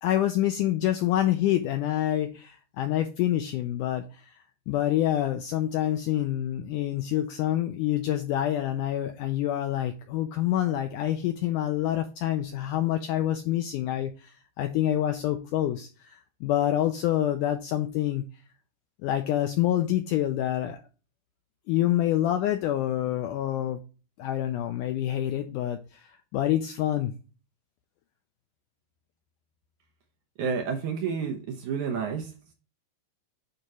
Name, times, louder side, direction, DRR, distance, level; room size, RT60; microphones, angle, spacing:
voice 1, 0.0-18.2 19.0-20.8 21.7-23.8 24.2-27.1, left 12 dB, 85° left, 1.8 m, -27 dB
voice 2, 30.4-32.3, right 6 dB, 70° right, 2.0 m, -30 dB
9.1 x 3.0 x 4.8 m
omnidirectional pair, 4.3 m